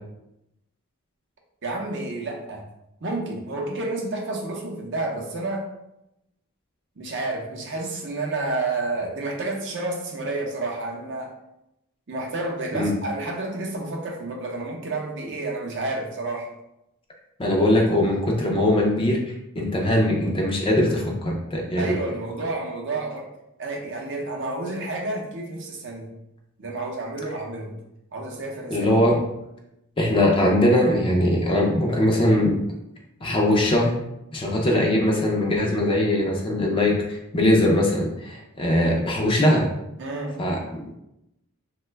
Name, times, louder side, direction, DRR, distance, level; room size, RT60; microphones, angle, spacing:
voice 1, 1.6-2.6 3.0-5.6 7.0-11.3 12.1-16.5 21.8-23.2 23.6-26.1 26.6-27.7 28.1-28.9 40.0-40.4, right 2 dB, 55° right, 0 dB, 0.5 m, -30 dB
voice 2, 17.4-22.0 28.7-29.2 30.0-32.6 33.2-33.9 34.3-39.7 40.4-41.0, left 1 dB, 25° left, 0 dB, 0.4 m, -21 dB
2.9 x 2.1 x 3.3 m, 0.87 s
head